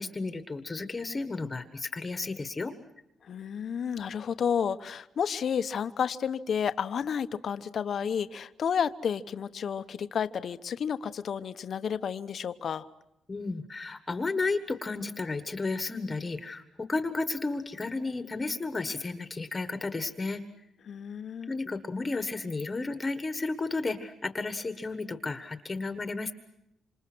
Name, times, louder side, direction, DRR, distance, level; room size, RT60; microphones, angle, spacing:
voice 1, 0.0-2.7 13.3-20.4 21.5-26.3, left 3 dB, 20° left, 9 dB, 1.5 m, -33 dB
voice 2, 3.2-12.9 20.9-21.5, left 7 dB, 45° left, 11 dB, 1.0 m, -31 dB
27.5 x 27.0 x 6.2 m, 0.83 s
cardioid pair, 155°, 0 cm